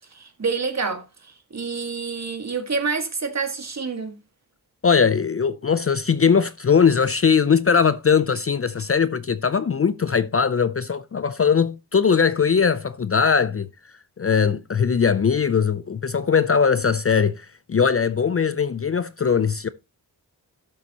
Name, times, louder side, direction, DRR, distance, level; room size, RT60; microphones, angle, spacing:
voice 1, 0.1-4.2, right 5 dB, 40° right, 1.8 m, -28 dB
voice 2, 4.8-13.7 14.2-19.7, left 6 dB, 35° left, 0.5 m, -20 dB
12.5 x 6.8 x 2.9 m
wide cardioid pair, 115°, 40 cm